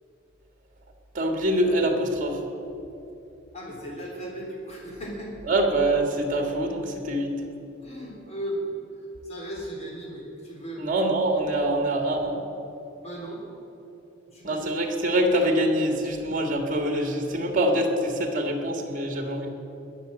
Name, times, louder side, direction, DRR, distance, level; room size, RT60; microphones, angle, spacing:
voice 1, 1.1-2.4 5.5-7.3 10.8-12.4 14.4-19.5, right 1 dB, 45° right, 3 dB, 1.7 m, -25 dB
voice 2, 3.5-5.3 7.8-8.8 9.2-10.9 13.0-13.5 14.3-14.6, right 1 dB, 35° left, -2 dB, 3.5 m, -36 dB
20.5 x 7.2 x 7.6 m, 2.9 s
head